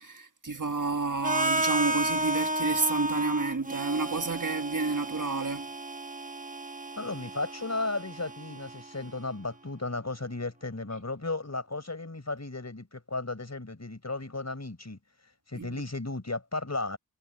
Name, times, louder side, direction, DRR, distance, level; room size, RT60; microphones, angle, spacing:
voice 1, 0.0-5.7 15.6-15.8, right 3 dB, 55° right, 1.8 m, -30 dB
Harmonica, 1.2-9.1, right 1 dB, 20° right, 1.1 m, -32 dB
voice 2, 6.9-15.0 15.5-17.0, left 2 dB, 45° left, 4.8 m, -34 dB
wide cardioid pair, 45°, 36 cm